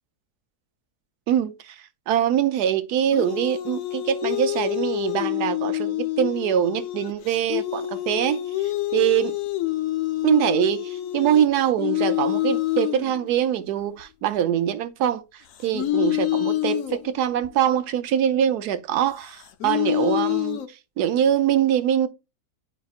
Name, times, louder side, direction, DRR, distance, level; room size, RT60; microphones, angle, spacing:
voice 1, 1.3-8.4 8.9-9.3 10.2-22.1, right 10 dB, 85° right, 1.2 m, -23 dB
sound 1, 3.1-13.5 14.0-14.1 15.6-17.5 19.3-20.7, left 16 dB, 65° left, 1.0 m, -27 dB
10.0 x 5.0 x 2.4 m
omnidirectional pair, 1.6 m